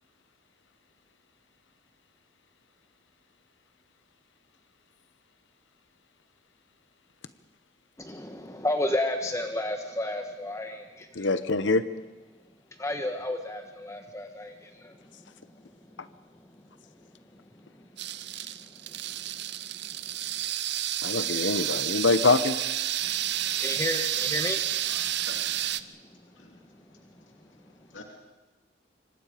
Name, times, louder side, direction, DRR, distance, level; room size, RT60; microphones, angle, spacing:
voice 1, 8.0-11.1 12.8-14.5 14.8-14.9 23.0-23.1 23.4-24.6, left 1 dB, 15° left, 5 dB, 1.3 m, -31 dB
voice 2, 11.1-11.8 21.0-22.6, left 3 dB, 70° left, 12 dB, 1.0 m, -24 dB
sound 1, 18.0-25.8, right 12 dB, 60° right, 0.7 m, -30 dB
voice 3, 24.9-25.5 26.0-28.0, left 3 dB, 85° left, 1 dB, 2.8 m, -50 dB
26.5 x 24.5 x 5.1 m, 1.2 s
head